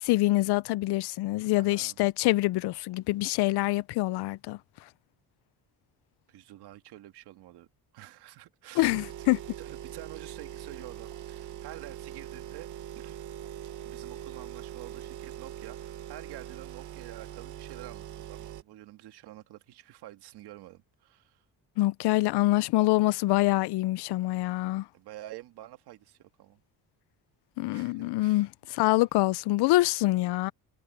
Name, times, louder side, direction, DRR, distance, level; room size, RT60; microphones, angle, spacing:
voice 1, 0.0-4.6 8.8-9.4 21.8-24.9 27.6-30.5, left 19 dB, 80° left, 0.5 m, -25 dB
voice 2, 1.6-2.0 6.3-7.7 7.9-8.9 9.6-12.7 13.0-13.2 13.8-21.4 24.9-26.6 27.7-28.5, right 14 dB, 75° right, 1.8 m, -48 dB
sound 1, 8.8-18.6, right 11 dB, 50° right, 0.9 m, -42 dB
cardioid pair, 170°, 39 cm